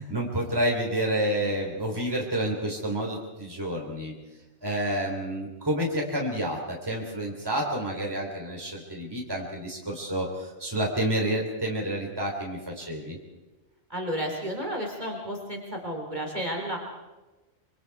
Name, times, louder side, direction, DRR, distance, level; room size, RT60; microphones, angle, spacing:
voice 1, 0.0-4.1 4.6-13.2, right 1 dB, 15° right, -1 dB, 3.5 m, -29 dB
voice 2, 13.9-16.8, equal, 30° right, 0 dB, 3.7 m, -32 dB
25.5 x 24.5 x 4.8 m, 1.1 s
omnidirectional pair, 1.4 m